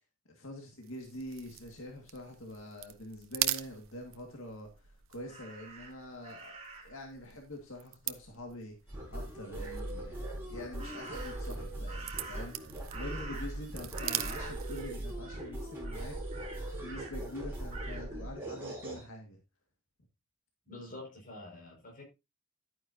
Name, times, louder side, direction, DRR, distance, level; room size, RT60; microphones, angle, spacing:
voice 1, 0.3-6.5 6.8-8.8 9.1-10.2 10.5-19.4, left 1 dB, 75° left, 2.0 m, -45 dB
sound 1, 0.8-15.2, right 13 dB, 75° right, 0.8 m, -42 dB
Crow, 5.3-7.0 10.8-11.5 11.9-13.7 13.9-14.9 15.2-15.5 15.8-17.1 17.7-18.0, right 3 dB, 30° right, 2.6 m, -47 dB
sound 2, 8.9-19.0, right 1 dB, 10° right, 4.8 m, -40 dB
voice 2, 20.7-22.0, left 2 dB, 40° left, 5.7 m, -47 dB
11.5 x 9.4 x 2.8 m
head